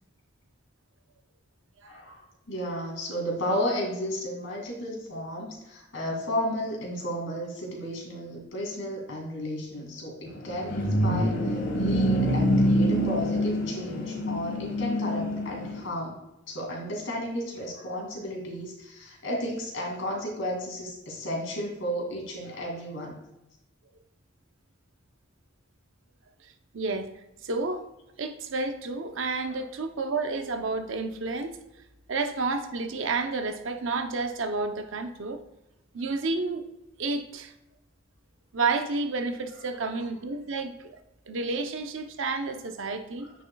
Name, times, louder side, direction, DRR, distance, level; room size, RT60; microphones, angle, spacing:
voice 1, 1.9-11.4 11.8-16.2 16.5-23.2 29.5-29.6, equal, 75° left, 2.4 m, -33 dB
sound 1, 10.3-15.9, equal, 60° left, 1.5 m, -26 dB
voice 2, 26.7-27.1 27.4-27.9 28.2-31.6 32.1-35.4 35.9-36.7 37.0-37.5 38.5-41.0 41.3-43.3, right 3 dB, 80° right, 0.7 m, -30 dB
9.0 x 6.2 x 2.3 m
head